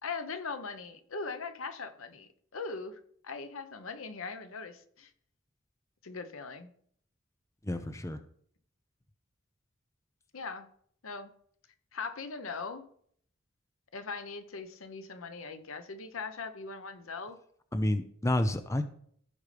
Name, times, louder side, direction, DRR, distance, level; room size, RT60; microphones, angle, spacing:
voice 1, 0.0-5.1 6.0-6.7 10.3-10.7 11.0-11.3 11.9-12.8 13.9-17.4, left 4 dB, 90° left, 9 dB, 0.9 m, -40 dB
voice 2, 7.6-8.2 17.7-18.8, left 1 dB, 15° left, 9 dB, 0.5 m, -29 dB
15.0 x 5.3 x 3.3 m, 0.63 s
head